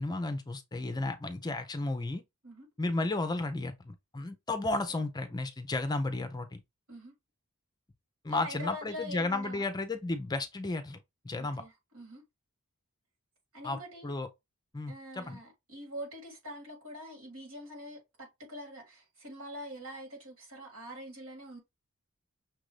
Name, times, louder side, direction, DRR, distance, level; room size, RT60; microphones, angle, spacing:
voice 1, 0.0-2.2 2.8-6.6 8.2-11.0 11.2-11.6 13.6-14.3 14.7-15.4, left 2 dB, 20° left, 0.5 m, -33 dB
voice 2, 8.3-9.7 11.4-12.2 13.5-14.2 14.9-21.6, equal, 80° right, 2.7 m, -45 dB
6.0 x 2.5 x 3.2 m
head